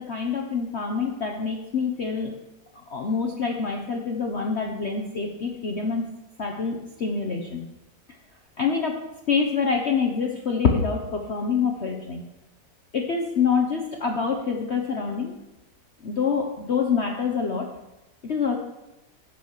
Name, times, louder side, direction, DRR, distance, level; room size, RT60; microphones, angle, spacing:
voice 1, 0.1-2.3 2.9-6.0 6.4-7.7 8.6-8.9 9.3-12.2 12.9-15.3 16.0-17.7 18.2-18.6, left 5 dB, 45° left, 2 dB, 1.0 m, -26 dB
12.5 x 6.2 x 6.4 m, 1.0 s
omnidirectional pair, 2.0 m